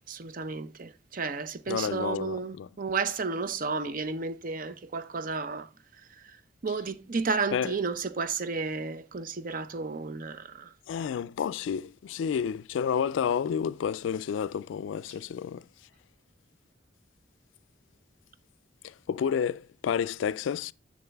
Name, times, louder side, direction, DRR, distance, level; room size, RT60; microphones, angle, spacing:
voice 1, 0.1-5.7 6.2-6.4 6.6-10.7, right 4 dB, 50° right, 0.6 m, -32 dB
voice 2, 1.7-2.7 7.5-7.7 10.9-15.7 18.8-20.7, left 7 dB, 90° left, 0.3 m, -30 dB
7.1 x 6.3 x 3.4 m
head